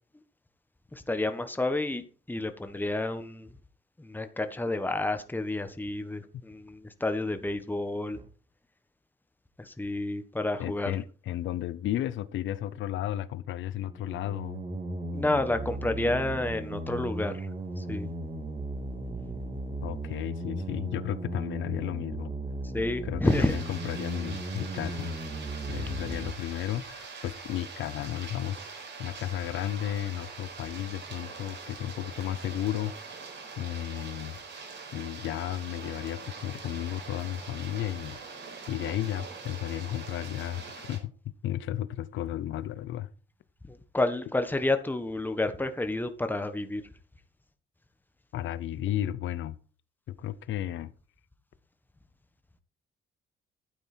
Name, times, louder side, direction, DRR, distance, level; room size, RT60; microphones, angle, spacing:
voice 1, 0.9-3.5 4.0-8.2 9.6-10.9 15.1-17.5 17.8-18.1 22.7-23.5 43.7-46.8, left 2 dB, 10° left, 1.4 m, -30 dB
sound 1, 8.1-8.3 13.8-26.3, right 2 dB, 40° right, 2.6 m, -36 dB
voice 2, 10.6-14.6 19.8-22.3 23.0-25.1 25.7-33.2 33.6-34.4 34.9-38.2 38.7-41.1 41.4-43.1 48.3-49.6 50.1-50.9, left 12 dB, 75° left, 0.7 m, -33 dB
sound 2, 23.2-41.0, right 4 dB, 65° right, 4.9 m, -43 dB
12.0 x 9.2 x 4.5 m
cardioid pair, 90°, 20 cm